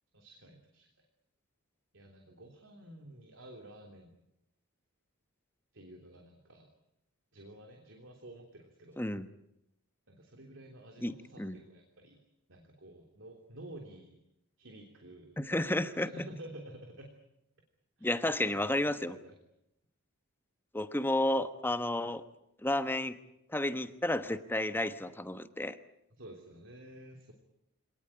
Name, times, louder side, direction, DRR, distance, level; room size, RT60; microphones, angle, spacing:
voice 1, 0.1-0.9 1.9-4.1 5.7-6.7 7.3-9.1 10.1-12.2 12.5-14.1 14.6-15.3 15.9-17.2 18.0-18.2 18.5-19.4 26.2-27.3, right 1 dB, 60° right, 3 dB, 3.2 m, -51 dB
voice 2, 9.0-9.3 11.0-11.6 15.4-16.1 18.0-19.2 20.7-22.2 22.6-23.2 23.5-25.8, left 1 dB, 10° left, 10 dB, 1.1 m, -32 dB
25.5 x 19.0 x 8.9 m, 0.82 s
head